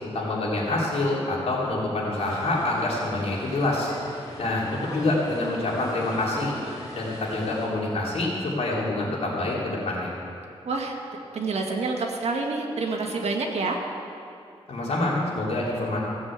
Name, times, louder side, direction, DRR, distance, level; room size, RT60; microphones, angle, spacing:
voice 1, 0.0-3.9 4.4-6.5 6.9-10.1 14.7-16.0, left 2 dB, 75° left, -5 dB, 3.5 m, -26 dB
sound 1, 2.1-7.7, left 1 dB, 35° left, 4.1 m, -42 dB
voice 2, 10.6-11.0 11.3-13.8, right 3 dB, 80° right, 1 dB, 1.7 m, -27 dB
15.5 x 7.4 x 8.1 m, 2.5 s
wide cardioid pair, 165°, 11 cm